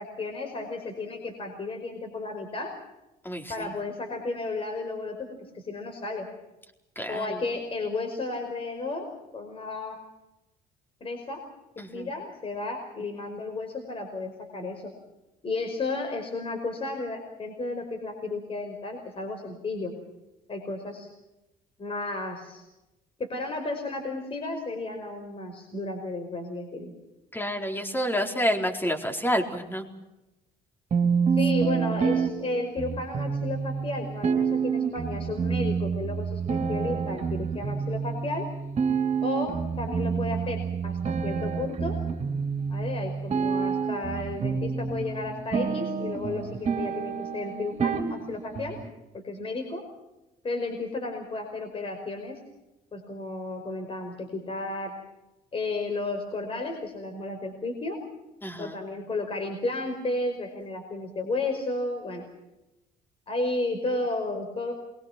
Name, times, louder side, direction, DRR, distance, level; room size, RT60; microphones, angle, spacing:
voice 1, 0.0-2.7 3.5-5.3 5.5-6.3 7.1-9.0 9.3-10.0 11.0-11.4 11.7-14.9 15.4-19.9 20.5-21.1 21.8-22.6 23.2-26.9 31.3-38.4 39.2-41.9 42.7-48.8 49.1-49.8 50.4-52.4 52.9-54.9 55.5-58.0 58.6-62.2 63.3-64.7, left 2 dB, 35° left, 4 dB, 5.2 m, -33 dB
voice 2, 3.2-3.7 7.0-7.4 11.8-12.1 27.3-29.8 58.4-58.8, equal, 10° left, 4 dB, 4.3 m, -29 dB
sound 1, 30.9-48.9, right 6 dB, 40° right, 4.0 m, -28 dB
28.0 x 23.0 x 6.1 m, 0.97 s
cardioid pair, 110°, 17 cm